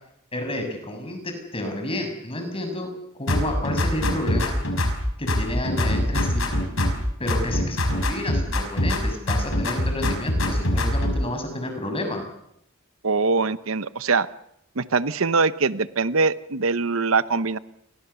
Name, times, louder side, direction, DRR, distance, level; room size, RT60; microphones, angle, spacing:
voice 1, 0.3-2.9 3.2-4.5 5.2-6.6 7.2-12.2, left 1 dB, 30° left, 5 dB, 6.6 m, -30 dB
sound 1, 3.3-5.0 5.3-7.0 7.3-9.0 9.3-11.2, left 1 dB, 75° left, 5.7 m, -23 dB
voice 2, 13.0-14.3 14.8-17.6, right 4 dB, 80° right, 15 dB, 0.9 m, -22 dB
29.5 x 23.0 x 7.0 m, 0.78 s
head